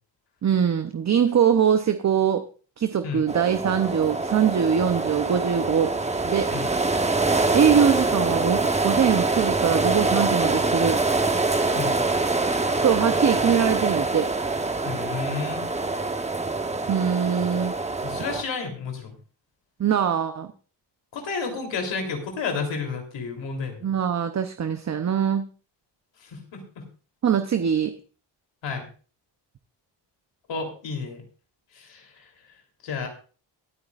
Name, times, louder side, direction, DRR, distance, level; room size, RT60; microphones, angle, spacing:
voice 1, 0.4-2.5 2.8-5.9 6.2-6.5 7.5-11.0 12.8-14.3 16.9-17.8 19.8-20.5 23.8-25.5 27.2-27.9, right 8 dB, 40° right, 8 dB, 0.8 m, -22 dB
sound 1, 3.3-18.4, right 3 dB, 15° right, 1.0 m, -25 dB
voice 2, 14.8-15.6 18.0-19.1 21.1-23.9 26.2-26.8 28.6-28.9 30.5-31.2 31.7-32.3 32.8-33.1, left 5 dB, 80° left, 3 dB, 3.5 m, -31 dB
21.0 x 9.3 x 2.5 m, 0.38 s
cardioid pair, 120°, 44 cm